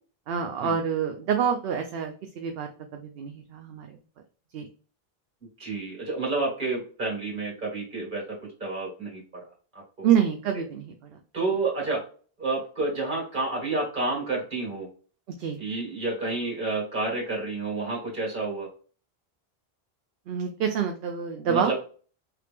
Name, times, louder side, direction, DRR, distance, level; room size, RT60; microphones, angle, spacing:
voice 1, 0.3-2.7 3.0-4.0 4.5-4.7 10.0-10.9 15.4-15.6 20.3-21.7, right 8 dB, 75° right, 4 dB, 0.8 m, -27 dB
voice 2, 5.6-8.2 8.6-9.2 10.0-10.1 11.3-12.0 12.4-14.9 15.6-18.7 21.5-21.7, right 3 dB, 50° right, -2 dB, 2.1 m, -29 dB
3.1 x 2.9 x 3.4 m, 0.40 s
omnidirectional pair, 1.0 m